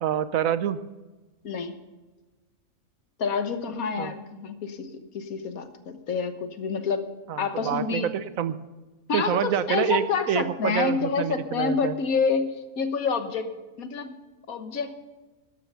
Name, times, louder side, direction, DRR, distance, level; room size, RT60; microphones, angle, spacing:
voice 1, 0.0-0.8 4.0-4.1 7.3-8.5 9.1-12.0, right 9 dB, 75° right, 13 dB, 1.2 m, -27 dB
voice 2, 3.2-7.0 7.4-8.1 9.1-14.1 14.5-14.9, left 5 dB, 85° left, 9 dB, 1.7 m, -28 dB
12.5 x 12.0 x 5.6 m, 1.2 s
omnidirectional pair, 1.5 m